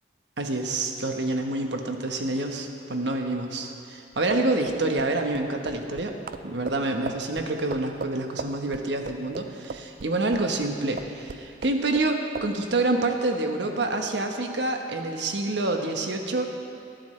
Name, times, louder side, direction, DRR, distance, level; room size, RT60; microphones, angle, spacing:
voice 1, 0.4-6.1 6.4-16.5, right 2 dB, 75° right, 3 dB, 1.2 m, -27 dB
sound 1, 4.1-10.7 11.0-12.1 12.4-12.5, right 4 dB, 50° right, 0.4 m, -37 dB
19.5 x 13.0 x 3.3 m, 2.6 s
head